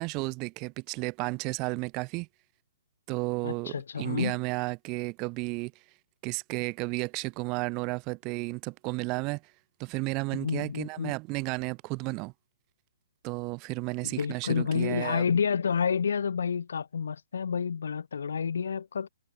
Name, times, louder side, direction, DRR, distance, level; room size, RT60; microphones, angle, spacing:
voice 1, 0.0-2.3 3.1-5.7 6.2-9.5 9.8-12.3 13.2-15.3, right 27 dB, 30° right, 1.5 m, -33 dB
voice 2, 3.4-4.4 10.3-11.1 14.0-19.1, left 6 dB, 70° left, 1.3 m, -29 dB
hypercardioid pair, 140°, 0 cm